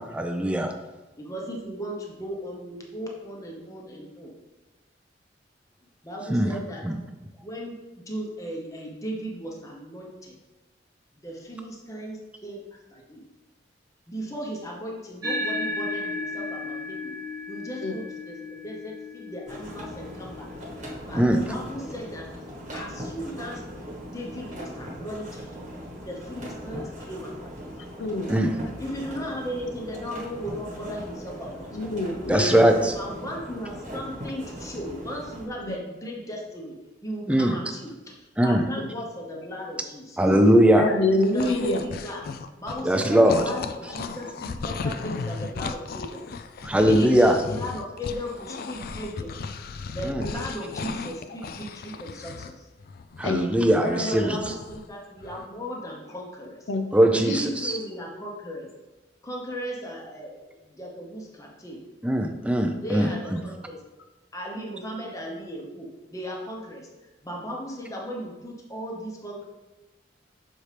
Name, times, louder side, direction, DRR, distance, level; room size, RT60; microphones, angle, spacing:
voice 1, 0.1-0.7 6.3-6.5 6.8-6.9 21.2-21.4 28.3-28.5 32.3-32.9 37.3-37.6 38.4-38.6 40.2-40.9 42.8-43.4 46.6-47.3 50.0-50.3 53.2-54.4 56.9-57.7 62.0-63.4, right 1 dB, 5° right, 5 dB, 0.4 m, -20 dB
voice 2, 1.2-4.3 6.0-6.8 7.4-10.3 11.2-13.2 14.1-17.1 17.5-20.5 21.0-22.3 22.7-23.6 24.0-25.5 26.0-27.7 28.8-31.9 32.9-40.4 41.3-42.2 42.6-46.2 46.6-49.4 49.9-52.7 53.9-56.7 57.1-58.7 59.2-61.8 62.7-63.8 64.3-66.9 67.2-69.4, equal, 20° left, -2 dB, 0.8 m, -36 dB
sound 1, 15.2-24.0, left 2 dB, 20° right, 1.1 m, -36 dB
sound 2, 19.5-35.5, equal, 40° right, 1.2 m, -39 dB
voice 3, 28.0-28.4 31.7-32.6 35.6-35.8 40.8-41.8 53.2-54.4 56.7-57.4, left 2 dB, 90° left, 5 dB, 0.7 m, -27 dB
sound 3, 41.0-43.0 43.3-52.5 52.8-54.9 55.2-55.5, left 4 dB, 55° left, 0.3 m, -36 dB
6.5 x 4.3 x 3.3 m, 1.1 s
head